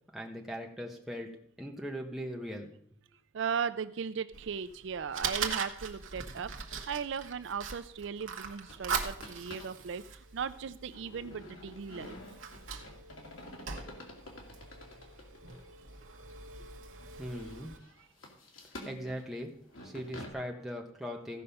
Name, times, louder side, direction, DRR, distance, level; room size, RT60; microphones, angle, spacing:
voice 1, 0.1-1.3 1.6-2.7 17.2-17.8 18.8-19.6 19.8-21.4, equal, ahead, 0 dB, 1.2 m, -39 dB
voice 2, 3.3-12.2 18.8-19.1, right 6 dB, 65° right, 12 dB, 0.4 m, -37 dB
Fire, 4.3-17.8, right 6 dB, 80° right, 1.2 m, -41 dB
sound 1, 8.5-9.8 10.1-10.2 10.9-15.7 16.3-16.4 17.0-20.3, left 1 dB, 85° left, 2.3 m, -49 dB
15.0 x 5.3 x 5.6 m, 0.64 s
head